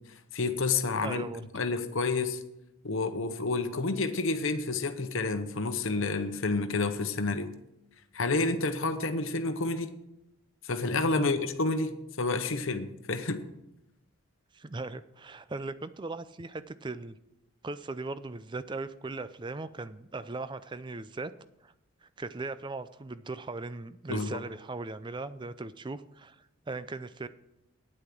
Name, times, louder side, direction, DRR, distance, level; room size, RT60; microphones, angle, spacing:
voice 1, 0.3-1.3 1.5-2.4 2.8-7.5 8.1-9.9 10.6-13.4 24.1-24.4, left 3 dB, 60° left, 8 dB, 0.9 m, -29 dB
voice 2, 1.0-1.4 11.1-11.3 14.5-17.2 17.6-21.3 21.6-21.7 22.0-27.3, right 3 dB, 20° right, 14 dB, 0.4 m, -38 dB
9.8 x 8.6 x 6.0 m, 0.87 s
head